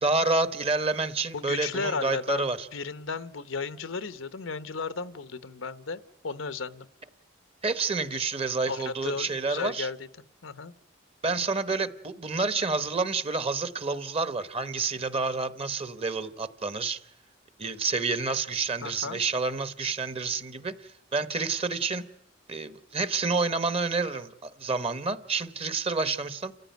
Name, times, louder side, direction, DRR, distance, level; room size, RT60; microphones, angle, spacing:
voice 1, 0.0-2.7 7.6-9.9 11.2-17.0 17.6-20.7 21.1-22.1 22.5-26.5, right 3 dB, 30° right, 1.0 m, -29 dB
voice 2, 1.3-6.9 8.7-10.1 10.4-10.7 18.8-19.2, left 4 dB, 90° left, 0.9 m, -34 dB
29.5 x 14.5 x 9.3 m
head